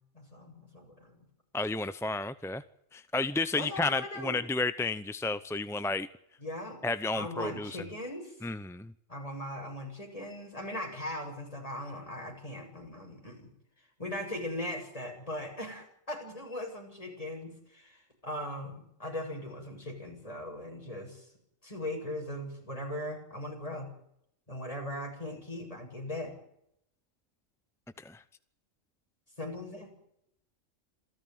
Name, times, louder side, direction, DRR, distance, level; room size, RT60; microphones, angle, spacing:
voice 1, 0.1-1.2 3.6-4.4 6.4-6.8 7.1-8.4 9.1-13.5 14.0-21.3 21.6-23.9 24.5-26.3 29.4-29.9, left 1 dB, 25° left, 2 dB, 7.6 m, -39 dB
voice 2, 1.5-2.6 2.9-6.1 6.8-7.7 8.4-8.9 28.0-28.2, left 3 dB, 5° left, 13 dB, 0.5 m, -32 dB
27.5 x 14.5 x 9.5 m, 0.75 s
omnidirectional pair, 1.4 m